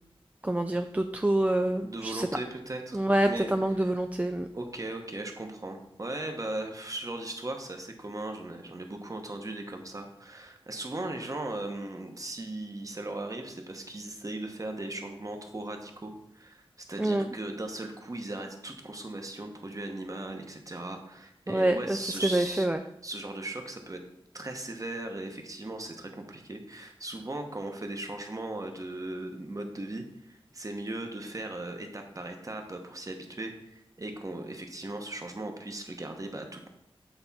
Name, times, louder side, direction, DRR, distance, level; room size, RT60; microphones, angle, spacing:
voice 1, 0.4-2.3 2.9-4.5 17.0-17.3 21.5-22.8, right 1 dB, 15° right, 6 dB, 0.3 m, -26 dB
voice 2, 1.8-3.5 3.8-3.9 4.5-22.7 23.0-24.0 24.3-36.7, right 2 dB, 35° right, 4 dB, 1.0 m, -38 dB
8.0 x 3.4 x 4.1 m, 0.81 s
wide cardioid pair, 70°, 10 cm